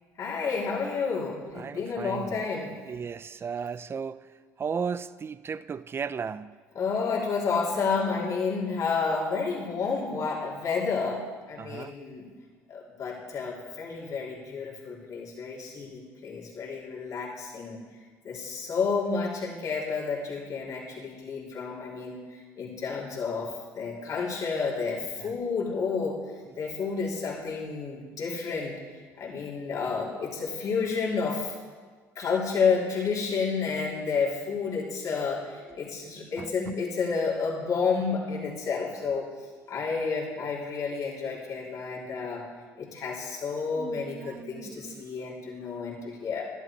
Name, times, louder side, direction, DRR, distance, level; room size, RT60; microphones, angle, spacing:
voice 1, 0.2-2.7 6.7-12.3 12.7-17.8 18.2-26.2 26.6-28.8 29.2-31.5 32.2-39.3 39.7-42.4 42.8-46.5, left 5 dB, 55° left, 3.6 m, -30 dB
voice 2, 1.5-2.4 2.9-4.2 4.6-6.6 11.6-11.9 25.2-25.4 32.2-32.3 36.4-36.8 43.8-45.1, right 6 dB, 35° right, 0.5 m, -36 dB
12.0 x 11.5 x 4.6 m
supercardioid pair, 75°, 7 cm